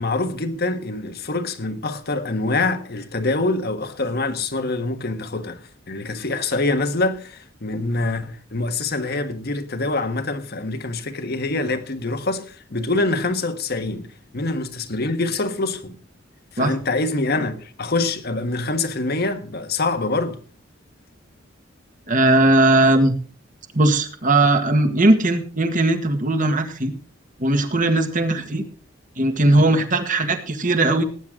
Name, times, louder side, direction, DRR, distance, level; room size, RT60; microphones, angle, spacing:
voice 1, 0.0-16.0 16.5-20.4, left 2 dB, 55° left, 1.5 m, -25 dB
voice 2, 22.1-23.1 23.7-26.9 27.4-28.6 29.2-31.0, right 2 dB, 45° right, 1.9 m, -18 dB
18.5 x 9.5 x 3.8 m
head